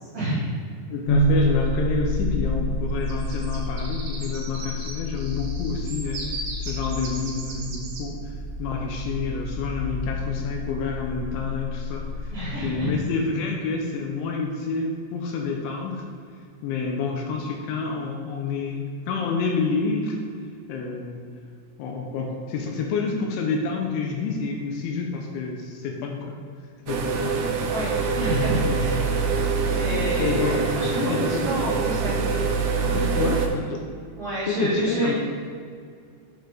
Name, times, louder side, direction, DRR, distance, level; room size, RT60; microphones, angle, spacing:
voice 1, 0.1-0.5 12.3-12.9 27.7-29.0 29.7-31.1 31.4-32.5 34.2-35.1, equal, 45° right, -11 dB, 2.0 m, -28 dB
voice 2, 0.9-12.4 12.6-16.0 16.6-20.2 20.7-21.3 21.8-26.4 26.8-27.4 28.6-29.5 29.9-31.7 32.7-33.8 34.5-35.1, left 4 dB, 85° left, 1 dB, 2.8 m, -29 dB
sound 1, 1.1-13.1, left 1 dB, 55° left, 2.6 m, -28 dB
sound 2, 3.1-8.0, right 3 dB, 65° right, 2.4 m, -38 dB
sound 3, 26.9-33.5, right 5 dB, 90° right, 2.2 m, -25 dB
9.4 x 6.7 x 3.8 m, 2.2 s
omnidirectional pair, 6.0 m